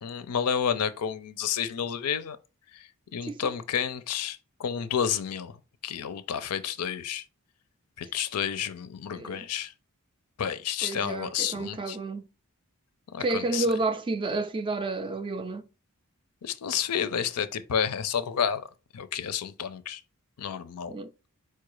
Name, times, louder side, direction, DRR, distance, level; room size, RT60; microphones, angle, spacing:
voice 1, 0.0-2.4 2.7-5.5 5.8-7.2 8.0-9.7 10.4-12.0 13.1-13.7 16.4-18.7 18.9-20.0 20.4-20.9, left 8 dB, 85° left, 0.5 m, -30 dB
voice 2, 9.1-9.5 10.8-12.3 13.2-15.6 20.9-21.1, right 2 dB, 20° right, 0.3 m, -30 dB
4.5 x 2.4 x 4.7 m
head